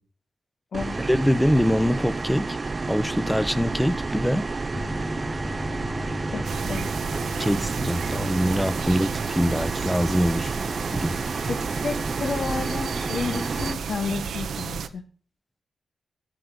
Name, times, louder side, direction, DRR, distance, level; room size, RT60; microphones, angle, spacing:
sound 1, 0.7-13.7, right 3 dB, 35° right, 0.6 m, -30 dB
voice 1, 1.1-2.6 2.9-4.5 7.4-10.6 10.9-11.1, equal, ahead, 1.0 m, -24 dB
sound 2, 4.7-8.9, left 2 dB, 30° left, 0.8 m, -38 dB
voice 2, 6.3-6.9 11.5-15.0, left 4 dB, 70° left, 1.9 m, -31 dB
sound 3, 6.4-14.9, right 6 dB, 85° right, 1.0 m, -32 dB
14.0 x 6.7 x 8.0 m
cardioid pair, 65°, 0 cm